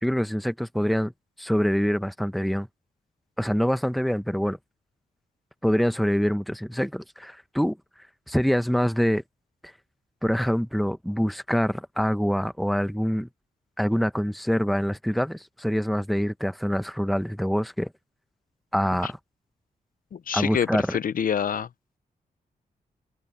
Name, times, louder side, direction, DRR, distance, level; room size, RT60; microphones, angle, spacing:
voice 1, 0.0-1.1 1.4-2.7 3.4-4.6 5.6-7.8 8.3-9.2 10.2-13.3 13.8-17.9 18.7-19.2 20.3-21.0, equal, ahead, 1.0 m, -25 dB
voice 2, 20.1-21.7, left 8 dB, 65° left, 0.7 m, -27 dB
cardioid pair, 85°, 16 cm